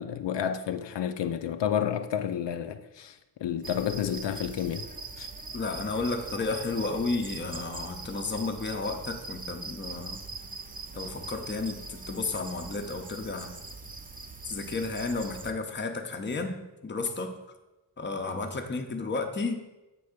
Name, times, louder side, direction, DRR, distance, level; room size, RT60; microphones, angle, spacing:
voice 1, 0.0-4.9 5.2-5.3, left 9 dB, 75° left, 0.5 m, -30 dB
sound 1, 3.6-15.5, right 3 dB, 20° right, 0.5 m, -42 dB
voice 2, 5.5-10.2 10.9-13.5 14.5-17.4 18.0-19.6, left 3 dB, 25° left, 0.7 m, -32 dB
7.7 x 3.5 x 6.5 m
wide cardioid pair, 160°, 44 cm